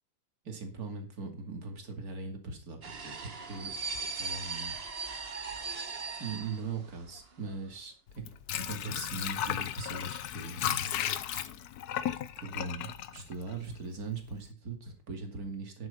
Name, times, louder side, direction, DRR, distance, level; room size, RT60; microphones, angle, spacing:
voice 1, 0.4-3.7 4.1-4.8 6.2-8.2 8.7-10.9 12.4-15.9, right 4 dB, 50° right, 4 dB, 2.9 m, -40 dB
sound 1, 2.8-7.2 7.5-7.6, right 4 dB, 35° right, 1.4 m, -38 dB
Water / Sink (filling or washing), 8.1-14.0 14.3-14.4, left 10 dB, 65° left, 1.2 m, -35 dB
11.0 x 8.0 x 5.4 m, 0.33 s
omnidirectional pair, 2.0 m